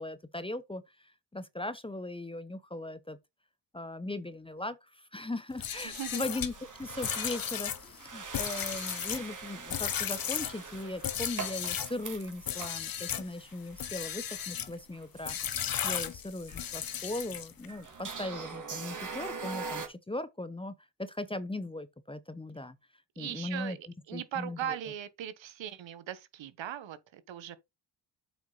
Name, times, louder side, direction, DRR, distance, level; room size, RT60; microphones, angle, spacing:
voice 1, 0.0-3.2 3.7-6.5 6.8-15.4 15.8-22.8 23.2-23.8 24.1-24.8, left 2 dB, 10° left, 0.8 m, -39 dB
sound 1, 5.5-12.0 12.4-13.3 13.7-14.7 15.2-17.7, left 9 dB, 50° left, 1.0 m, -35 dB
voice 2, 5.7-6.2 23.1-27.6, right 10 dB, 70° right, 1.3 m, -39 dB
sound 2, 5.9-19.9, right 5 dB, 40° right, 2.3 m, -44 dB
7.7 x 5.7 x 4.0 m
cardioid pair, 80°, 46 cm